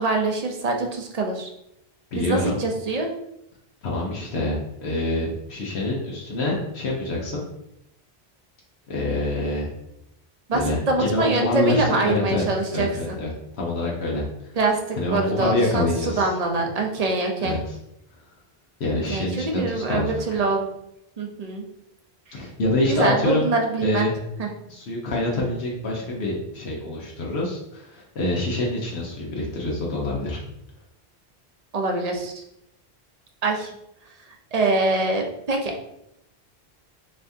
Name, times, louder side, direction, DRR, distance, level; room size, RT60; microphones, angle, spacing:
voice 1, 0.0-1.5 2.2-3.1 10.5-13.2 14.6-17.6 19.1-20.7 21.2-21.6 22.3-22.4 22.9-24.1 24.4-24.5 31.7-32.3 33.4-33.7 34.5-35.7, right 3 dB, 45° right, 2 dB, 0.7 m, -24 dB
voice 2, 2.1-2.6 3.8-7.4 8.9-9.7 10.5-12.4 12.7-13.3 13.6-14.5 15.0-16.3 17.4-17.8 18.8-20.4 22.3-23.5 23.8-24.1 24.7-30.4, left 1 dB, 85° left, -3 dB, 1.1 m, -26 dB
4.3 x 3.5 x 2.7 m, 0.81 s
omnidirectional pair, 1.1 m